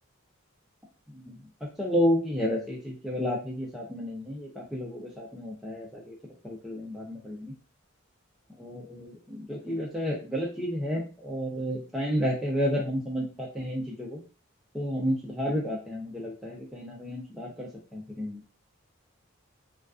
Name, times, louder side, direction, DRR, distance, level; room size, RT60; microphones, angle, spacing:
voice 1, 1.6-6.2 6.4-7.5 8.6-14.2 14.7-18.4, equal, ahead, -4 dB, 0.4 m, -31 dB
2.3 x 2.3 x 2.3 m, 0.33 s
head